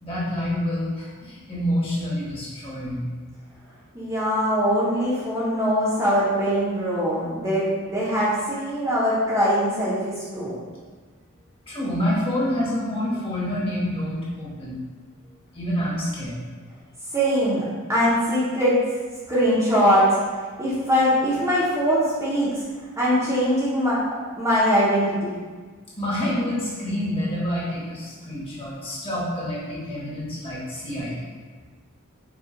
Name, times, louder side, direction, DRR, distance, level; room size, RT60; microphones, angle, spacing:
voice 1, 0.0-3.0 5.5-5.6 11.7-14.8 15.5-16.4 26.0-31.3, left 1 dB, 25° left, -7 dB, 1.2 m, -27 dB
voice 2, 3.9-10.6 17.1-17.6 17.9-18.7 19.3-20.0 20.6-22.5 23.0-24.0 24.4-25.3, equal, 15° right, -9 dB, 0.8 m, -22 dB
5.2 x 2.4 x 3.7 m, 1.4 s
head